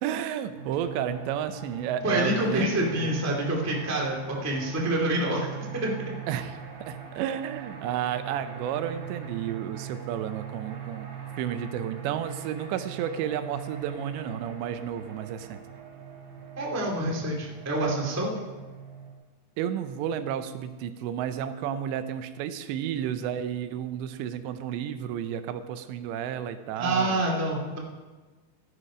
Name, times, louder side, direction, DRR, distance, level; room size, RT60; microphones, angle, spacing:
voice 1, 0.0-2.7 3.0-3.2 6.3-6.6 6.9-11.1 11.4-15.6 19.6-27.2, right 9 dB, 80° right, 10 dB, 2.9 m, -32 dB
sound 1, 0.5-19.1, right 8 dB, 55° right, 3.1 m, -41 dB
voice 2, 2.0-6.1 16.6-18.4 26.8-27.8, right 1 dB, 25° right, -2 dB, 0.3 m, -27 dB
14.0 x 11.0 x 5.0 m, 1.3 s
omnidirectional pair, 5.2 m